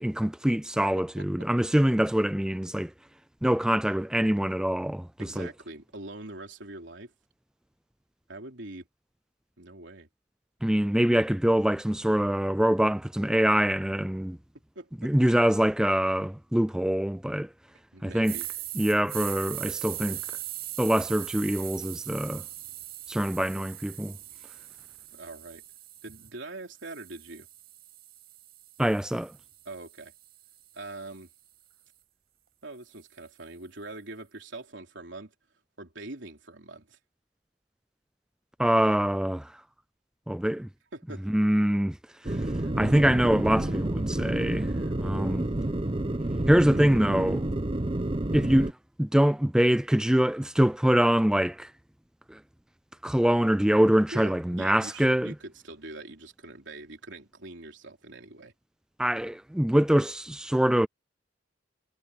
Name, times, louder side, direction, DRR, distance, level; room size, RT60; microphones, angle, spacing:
voice 1, 0.0-2.9 3.4-5.5 10.6-14.4 15.0-17.5 18.0-18.4 18.8-20.2 20.8-22.4 23.1-24.1 28.8-29.3 38.6-39.6 40.3-40.7 41.3-42.0 42.2-42.5 42.7-45.5 46.5-47.5 48.3-51.7 52.3-52.4 53.0-55.3 59.0-60.9, equal, 5° right, 0.3 m, -24 dB
voice 2, 1.0-1.5 5.2-7.1 8.3-8.9 9.6-10.1 14.8-15.1 17.9-18.5 25.1-25.6 26.0-27.5 29.7-30.1 30.7-31.3 32.6-35.3 35.8-37.0 40.9-41.3 54.1-58.5, right 2 dB, 70° right, 3.6 m, -43 dB
sound 1, 18.2-26.3 26.8-31.0, right 14 dB, 55° right, 7.6 m, -40 dB
sound 2, 42.2-48.7, right 1 dB, 30° right, 0.9 m, -29 dB
head